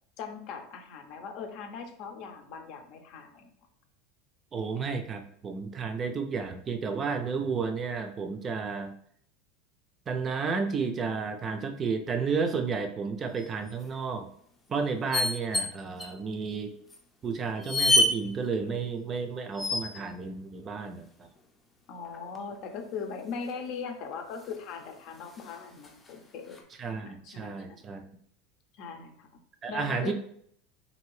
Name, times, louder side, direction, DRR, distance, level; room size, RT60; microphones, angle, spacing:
voice 1, 0.2-3.5 21.9-26.6 27.0-27.8 28.8-29.3 29.7-30.1, left 5 dB, 55° left, 5 dB, 0.6 m, -40 dB
voice 2, 4.5-8.9 10.1-14.3 14.7-16.7 17.2-21.3 26.8-28.0 29.6-30.1, right 5 dB, 30° right, 5 dB, 0.4 m, -32 dB
sound 1, 13.4-13.7 15.1-15.7 16.0-16.1 16.9-17.0 17.6-18.1 19.6-20.0 22.0-22.6 24.1-24.2 24.4-24.6 25.3-26.1 26.5-26.6, left 1 dB, 15° left, 0.6 m, -26 dB
2.7 x 2.6 x 3.1 m, 0.65 s
supercardioid pair, 115°, 0 cm